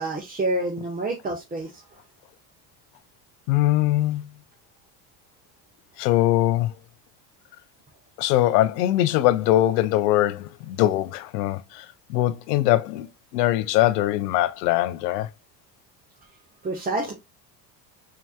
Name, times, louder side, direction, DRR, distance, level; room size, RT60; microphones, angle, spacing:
voice 1, 0.0-1.8 16.6-17.1, right 2 dB, 20° right, 1.0 m, -28 dB
voice 2, 3.5-4.2 6.0-6.7 8.2-13.1 13.3-15.3, left 14 dB, 90° left, 0.6 m, -22 dB
4.4 x 2.9 x 2.2 m
supercardioid pair, 85°, 46 cm